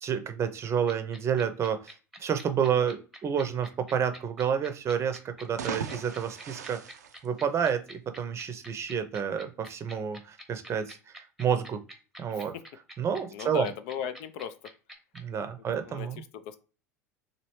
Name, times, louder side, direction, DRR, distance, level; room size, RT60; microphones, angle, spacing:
voice 1, 0.0-1.9 2.2-6.8 7.2-11.8 12.2-12.5 13.0-13.7 15.1-16.2, right 8 dB, 30° right, 9 dB, 0.6 m, -29 dB
sound 1, 0.9-15.2, right 1 dB, ahead, 0.9 m, -46 dB
sound 2, 5.4-8.0, right 7 dB, 80° right, 0.4 m, -39 dB
voice 2, 13.3-14.5 15.8-16.6, left 8 dB, 55° left, 12 dB, 0.4 m, -37 dB
3.0 x 2.6 x 3.0 m, 0.36 s
figure-of-eight pair, 80°, 9 cm